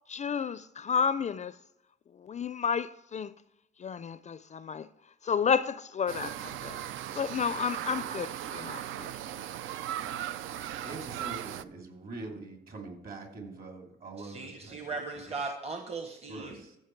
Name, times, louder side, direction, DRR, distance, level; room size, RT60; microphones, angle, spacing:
voice 1, 0.1-1.5 2.3-3.3 3.8-4.9 5.3-6.3 6.6-6.8 7.1-9.1, left 6 dB, 35° left, 0.4 m, -31 dB
sound 1, 6.1-11.6, right 11 dB, 80° right, 0.5 m, -37 dB
voice 2, 10.8-15.0 16.3-16.8, right 2 dB, 50° right, 2.8 m, -43 dB
voice 3, 14.2-16.6, right 3 dB, 30° right, 1.1 m, -38 dB
14.5 x 5.4 x 4.5 m
cardioid pair, 90°, 20 cm